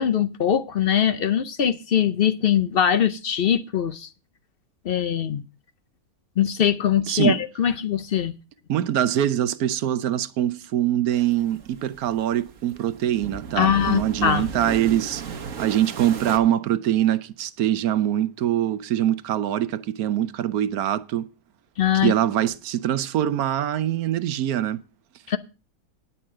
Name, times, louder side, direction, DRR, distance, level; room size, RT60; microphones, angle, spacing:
voice 1, 0.0-4.1 4.8-5.4 6.4-8.3 13.6-14.5 21.8-22.1 25.3-25.4, left 9 dB, 60° left, 0.6 m, -22 dB
voice 2, 7.1-7.4 8.7-15.2 15.6-21.3 22.0-24.8, right 11 dB, 75° right, 1.2 m, -23 dB
sound 1, 11.1-16.4, right 6 dB, 60° right, 1.4 m, -35 dB
10.0 x 5.5 x 7.6 m
omnidirectional pair, 1.6 m